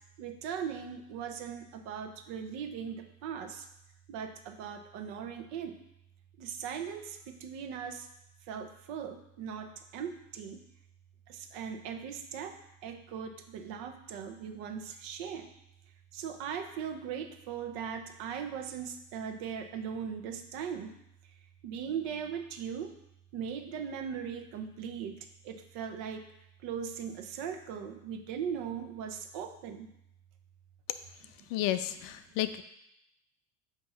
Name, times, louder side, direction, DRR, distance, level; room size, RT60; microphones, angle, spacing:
voice 1, 0.2-3.7 4.1-5.8 6.4-8.1 8.5-10.6 11.3-12.6 12.8-15.5 16.1-21.0 21.6-22.9 23.3-25.2 25.4-26.2 26.6-29.9, right 7 dB, 60° right, 6 dB, 0.9 m, -39 dB
voice 2, 31.5-32.6, left 13 dB, 50° left, 11 dB, 0.5 m, -32 dB
7.8 x 2.9 x 5.6 m, 0.80 s
supercardioid pair, 125°, 43 cm